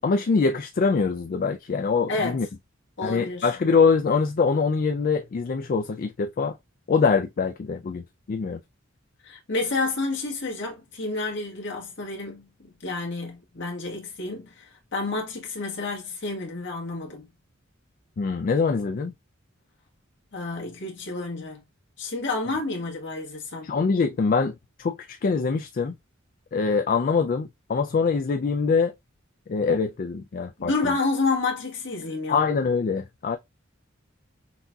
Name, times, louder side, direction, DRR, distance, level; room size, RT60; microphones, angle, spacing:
voice 1, 0.0-2.5 3.0-6.6 6.9-8.6 18.2-19.1 23.6-25.9 26.5-28.9 29.5-30.9 32.3-33.4, left 5 dB, 45° left, 0.3 m, -24 dB
voice 2, 2.1-2.4 3.0-3.5 9.2-17.3 20.3-21.6 22.0-23.7 30.6-32.5, left 3 dB, 60° left, 1.5 m, -29 dB
5.8 x 2.7 x 2.3 m
head